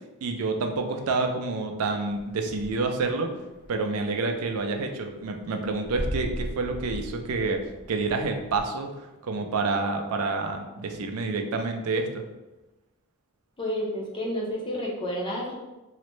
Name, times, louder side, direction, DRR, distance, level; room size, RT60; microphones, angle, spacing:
voice 1, 0.2-3.3 3.7-7.6 7.9-12.2, right 3 dB, 80° right, 4 dB, 0.4 m, -28 dB
sound 1, 2.1-3.1 3.4-8.6, equal, 35° right, 0.7 m, -37 dB
voice 2, 13.6-15.6, equal, 25° left, -2 dB, 0.5 m, -30 dB
3.1 x 2.0 x 3.1 m, 1.1 s
head